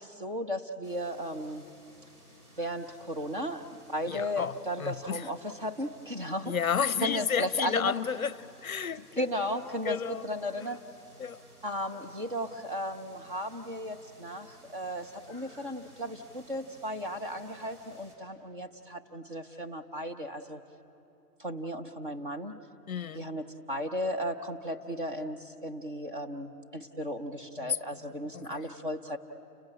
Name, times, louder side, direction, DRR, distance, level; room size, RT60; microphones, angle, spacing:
voice 1, 0.0-1.7 2.6-6.5 7.0-7.9 9.2-10.8 11.6-20.6 21.4-22.6 23.1-29.2, equal, 30° right, 5 dB, 0.9 m, -35 dB
sound 1, 0.8-18.2, equal, 65° right, 5.9 m, -57 dB
voice 2, 4.1-5.3 6.4-9.6 9.8-10.3 10.6-10.7 11.2-11.4 22.9-23.3 27.6-28.7, left 7 dB, 55° left, 19 dB, 0.6 m, -32 dB
29.5 x 15.5 x 9.8 m, 2.8 s
hypercardioid pair, 170°, 49 cm